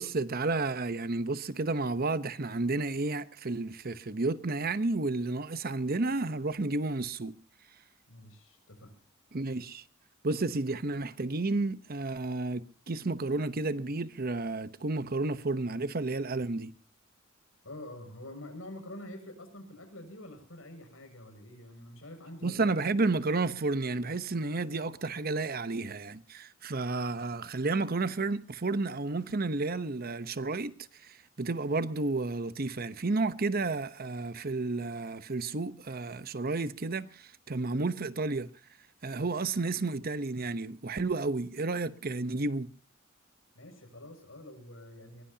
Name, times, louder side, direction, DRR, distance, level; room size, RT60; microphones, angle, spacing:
voice 1, 0.0-7.4 9.3-9.8 10.2-16.7 22.4-30.7 31.0-38.5 39.0-42.7, right 3 dB, 50° right, 0.9 m, -31 dB
voice 2, 8.1-8.9 17.6-22.7 43.5-45.2, left 1 dB, 85° left, 6.8 m, -46 dB
22.0 x 21.5 x 2.8 m
head